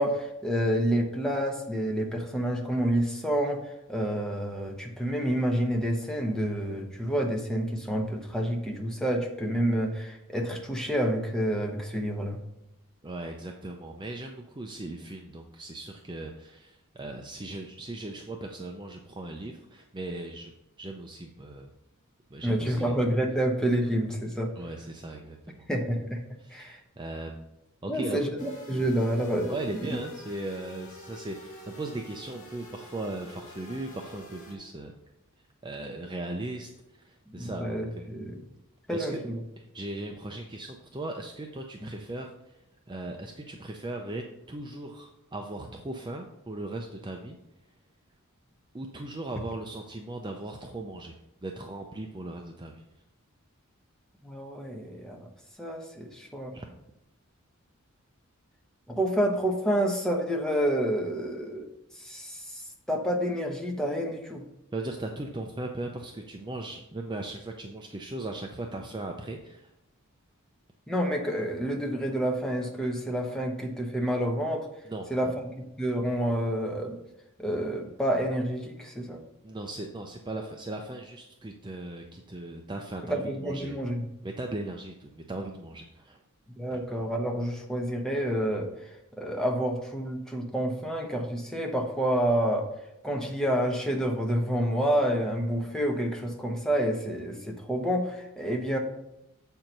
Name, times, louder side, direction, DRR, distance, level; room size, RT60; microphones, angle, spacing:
voice 1, 0.0-12.4 22.4-24.5 25.7-26.2 26.5-26.8 27.9-30.0 37.3-38.4 38.9-39.4 54.2-55.3 55.6-56.6 58.9-61.7 62.0-62.6 62.9-64.5 70.9-74.7 75.1-77.0 77.4-79.2 83.1-84.0 86.5-88.9 89.2-92.7 93.0-98.8, equal, 5° left, 1 dB, 1.0 m, -28 dB
voice 2, 13.0-20.5 20.8-21.7 22.3-22.9 24.6-25.7 26.4-27.4 27.8-28.2 29.5-34.9 35.6-38.1 38.9-39.2 39.6-42.6 42.9-47.4 48.7-52.8 56.5-56.7 64.7-69.7 74.8-75.3 79.4-83.8 84.2-86.2 86.7-86.8, right 2 dB, 20° right, 2 dB, 0.5 m, -38 dB
sound 1, 28.4-34.6, equal, 35° left, 1.5 m, -47 dB
7.5 x 4.5 x 5.2 m, 0.88 s
head